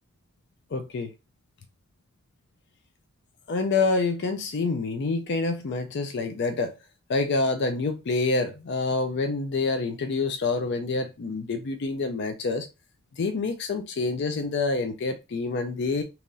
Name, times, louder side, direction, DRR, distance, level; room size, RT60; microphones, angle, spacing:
voice 1, 0.7-1.1 3.5-6.7 7.1-12.7 13.2-16.0, left 3 dB, 50° left, 0.4 m, -27 dB
2.9 x 2.5 x 3.8 m
head